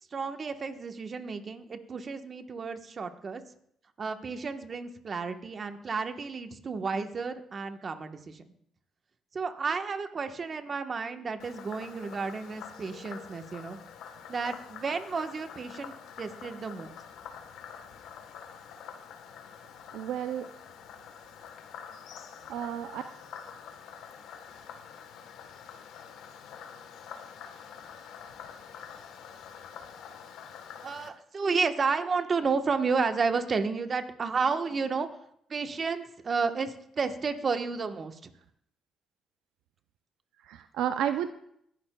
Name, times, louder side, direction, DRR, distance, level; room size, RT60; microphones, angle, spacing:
voice 1, 0.1-3.4 4.0-8.4 9.3-13.8 14.3-17.0 30.8-35.1 35.5-38.3, right 5 dB, 45° right, 7 dB, 1.2 m, -32 dB
Frog, 11.4-31.1, left 7 dB, 85° left, 1.2 m, -46 dB
voice 2, 19.9-20.5 22.5-23.0 40.4-41.3, right 10 dB, 90° right, 9 dB, 0.5 m, -31 dB
23.5 x 11.0 x 2.3 m, 0.70 s
cardioid pair, 90°, 0 cm